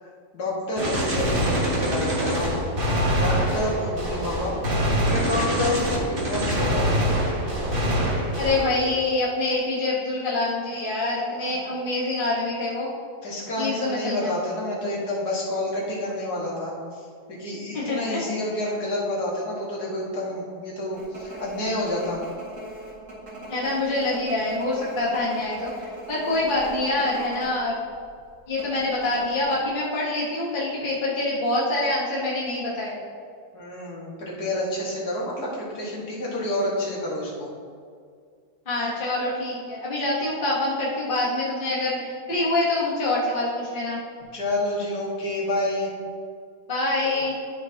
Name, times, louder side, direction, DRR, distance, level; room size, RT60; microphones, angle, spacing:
voice 1, 0.0-2.6 3.2-7.1 11.3-11.6 13.2-22.2 33.5-37.5 44.3-45.9, left 1 dB, 70° left, -4 dB, 2.2 m, -29 dB
Gunshot gunfire, 0.8-8.8, equal, 35° right, 1.6 m, -24 dB
voice 2, 8.3-12.9 13.6-14.3 17.7-18.2 23.5-27.8 28.5-32.9 38.7-44.0 46.7-47.3, left 2 dB, 35° left, -7 dB, 1.3 m, -25 dB
sound 1, 20.9-27.6 27.8-28.0 28.6-29.6, right 1 dB, 55° right, 2.5 m, -40 dB
12.5 x 5.4 x 2.8 m, 2.2 s
omnidirectional pair, 1.8 m